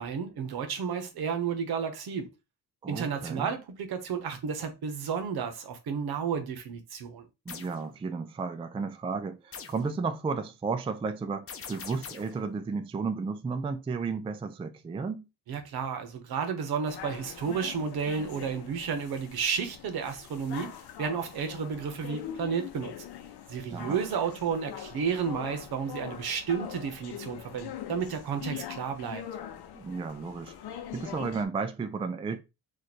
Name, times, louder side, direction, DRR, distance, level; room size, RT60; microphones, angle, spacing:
voice 1, 0.0-2.3 2.9-7.3 15.5-20.7 21.0-22.9 23.5-29.2, right 6 dB, 70° right, 1.0 m, -32 dB
voice 2, 2.8-3.5 7.5-15.2 23.7-24.0 29.7-30.5 30.9-32.4, right 4 dB, 15° right, 0.3 m, -33 dB
sound 1, 7.5-7.8 9.5-9.9 11.5-12.4, left 6 dB, 35° left, 0.6 m, -43 dB
sound 2, 16.9-31.4, left 10 dB, 85° left, 0.7 m, -43 dB
3.1 x 2.5 x 4.1 m
cardioid pair, 130°, 38 cm